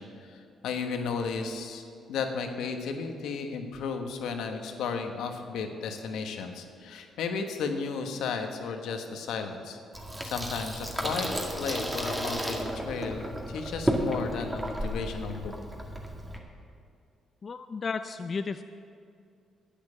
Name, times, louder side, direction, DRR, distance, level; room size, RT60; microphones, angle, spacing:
voice 1, 0.0-1.8 2.1-9.8 10.2-11.3 11.6-15.5, left 5 dB, 80° left, 5 dB, 1.3 m, -34 dB
Water tap faucet / Sink (filling or washing), 9.9-16.4, equal, 10° right, 1.9 m, -33 dB
voice 2, 17.4-18.6, left 5 dB, 40° left, 9 dB, 0.4 m, -33 dB
10.5 x 9.0 x 8.6 m, 2.4 s
cardioid pair, 90°, 0 cm